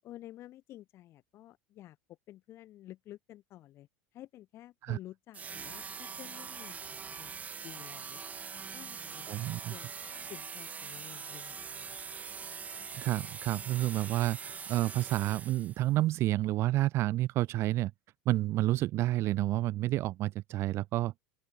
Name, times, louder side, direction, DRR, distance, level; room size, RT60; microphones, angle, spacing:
voice 1, 0.0-7.4 7.6-8.2 8.7-9.9 10.3-12.2, left 14 dB, 50° left, 7.2 m, -51 dB
sound 1, 5.3-15.9, right 6 dB, 25° right, 2.3 m, -43 dB
voice 2, 9.3-9.7 13.0-17.9 18.3-21.1, right 16 dB, 50° right, 0.6 m, -30 dB
open air
hypercardioid pair, 100°, 6 cm